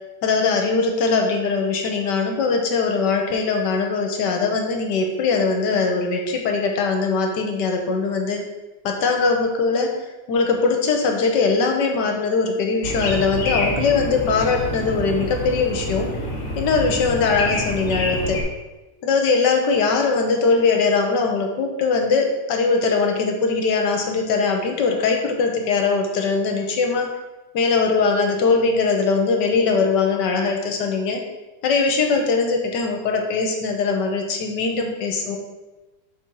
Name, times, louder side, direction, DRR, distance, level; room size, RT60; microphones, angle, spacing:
voice 1, 0.2-8.4 8.8-10.0 10.3-16.1 16.6-18.4 19.0-27.1 27.5-31.2 31.6-35.4, left 4 dB, 70° left, 3 dB, 1.4 m, -21 dB
sound 1, 12.8-18.4, left 1 dB, 45° left, 1.3 m, -27 dB
6.1 x 4.1 x 4.6 m, 1.1 s
omnidirectional pair, 2.0 m